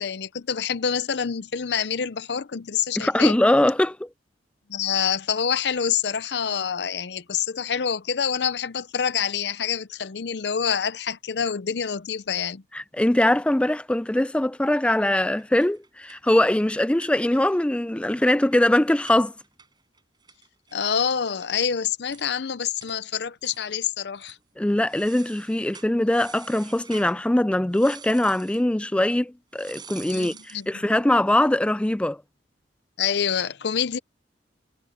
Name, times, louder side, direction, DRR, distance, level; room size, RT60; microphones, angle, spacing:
voice 1, 0.0-3.3 4.7-12.6 20.7-24.4 30.1-30.7 33.0-34.0, left 7 dB, 65° left, 0.6 m, -26 dB
voice 2, 3.0-4.1 12.7-19.3 24.6-32.2, left 1 dB, 5° left, 0.3 m, -22 dB
sound 1, 15.0-17.7 18.0-18.1 18.3-21.5 21.8-21.9 22.1-22.3 22.8-23.0 23.4-23.8 24.2-24.4 24.9-27.1 27.7-28.6 29.5-30.7, right 6 dB, 25° right, 5.8 m, -47 dB
head